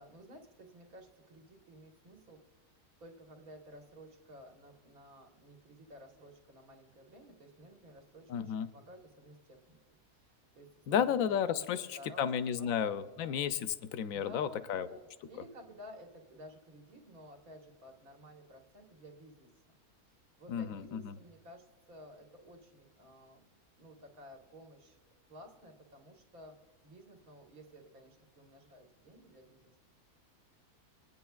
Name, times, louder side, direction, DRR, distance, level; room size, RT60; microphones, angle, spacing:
voice 1, 0.0-2.4 3.0-9.8 10.2-11.3 11.6-11.7 12.0-13.4 14.1-19.5 20.4-23.5 23.8-25.0 25.3-26.6 26.8-29.8, equal, 70° right, 1 dB, 2.0 m, -54 dB
voice 2, 8.3-8.7 10.9-14.9 20.5-21.2, left 8 dB, 75° left, 13 dB, 1.0 m, -33 dB
22.0 x 9.4 x 2.3 m, 1.4 s
omnidirectional pair, 1.6 m